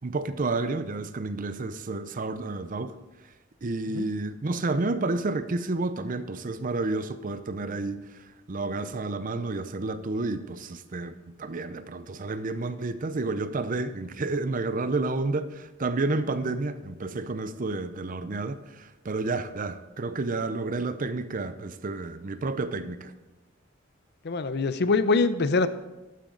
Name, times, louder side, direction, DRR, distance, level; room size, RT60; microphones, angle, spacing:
voice 1, 0.0-3.0 3.6-8.0 8.5-23.1, right 3 dB, 45° right, 0.6 m, -30 dB
voice 2, 24.2-25.7, left 3 dB, 55° left, 0.6 m, -24 dB
12.0 x 9.2 x 3.9 m
head